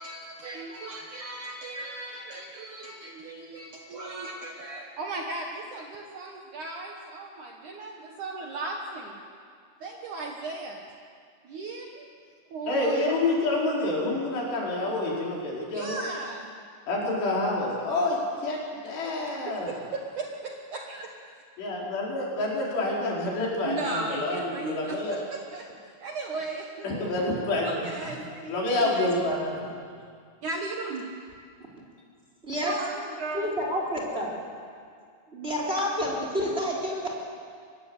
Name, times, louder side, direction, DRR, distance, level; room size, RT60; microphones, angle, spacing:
voice 1, 0.0-9.2 9.8-10.8 11.4-12.1 12.5-13.2 15.7-16.5 19.3-21.4 23.6-25.7 26.0-26.9 27.6-28.6 28.8-29.1 30.4-31.1 32.6-33.6, right 3 dB, 60° right, 1 dB, 2.3 m, -36 dB
voice 2, 12.7-16.0 16.9-19.7 21.6-25.2 26.8-27.8 28.5-29.8, left 2 dB, 70° left, -4 dB, 6.8 m, -28 dB
voice 3, 33.3-34.3 35.3-37.1, equal, 15° right, -1 dB, 3.6 m, -29 dB
24.0 x 20.0 x 8.1 m, 2.1 s
omnidirectional pair, 5.0 m